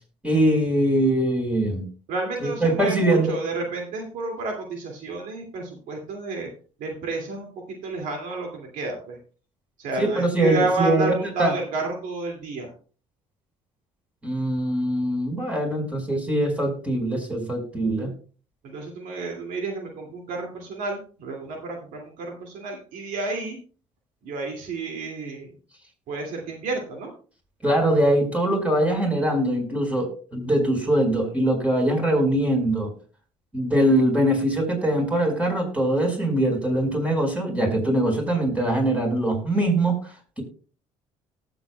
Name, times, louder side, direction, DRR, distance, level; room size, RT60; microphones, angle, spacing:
voice 1, 0.2-1.8 2.4-3.4 10.0-11.1 11.4-11.5 14.2-18.1 27.6-32.9 33.5-40.4, right 1 dB, 10° right, 2 dB, 4.8 m, -22 dB
voice 2, 2.1-6.5 6.8-9.2 9.8-12.7 18.6-23.6 24.2-25.5 26.1-27.1, right 3 dB, 75° right, 1 dB, 2.4 m, -31 dB
18.5 x 7.9 x 2.3 m, 0.39 s
supercardioid pair, 85°, 14 cm